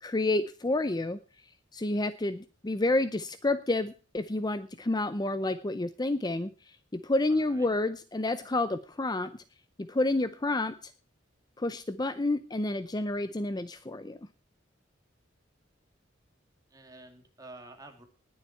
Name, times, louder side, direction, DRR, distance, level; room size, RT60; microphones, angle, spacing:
voice 1, 0.0-1.2 1.7-9.3 9.9-10.7 11.6-14.2, left 2 dB, 20° left, 12 dB, 0.6 m, -29 dB
voice 2, 7.3-7.7 16.7-18.0, right 2 dB, 20° right, 4 dB, 2.4 m, -50 dB
19.5 x 7.3 x 4.5 m, 0.37 s
head